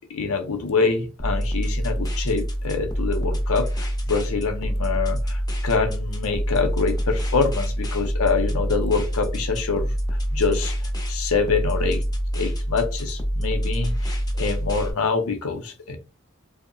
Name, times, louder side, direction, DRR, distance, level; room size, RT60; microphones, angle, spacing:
voice 1, 0.1-9.9 10.3-12.0 12.3-16.0, left 4 dB, 70° left, 0.5 m, -25 dB
sound 1, 1.2-14.9, equal, 15° left, 0.5 m, -26 dB
2.6 x 2.0 x 2.5 m
head